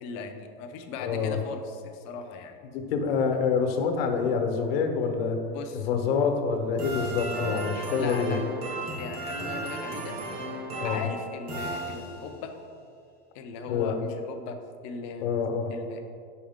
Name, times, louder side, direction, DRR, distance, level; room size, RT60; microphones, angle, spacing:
voice 1, 0.0-2.7 5.5-5.9 7.3-8.4 9.0-10.2 10.8-12.5 13.3-14.6 14.8-15.3 15.7-16.0, left 5 dB, 30° left, 5 dB, 0.4 m, -38 dB
voice 2, 1.0-1.4 2.7-5.4 5.7-8.4 10.8-11.0 13.7-13.9 15.2-15.7, left 5 dB, 75° left, 5 dB, 0.9 m, -26 dB
sound 1, 6.8-12.5, right 2 dB, 40° right, 1.0 m, -35 dB
6.2 x 4.8 x 3.5 m, 2.3 s
supercardioid pair, 170°, 30 cm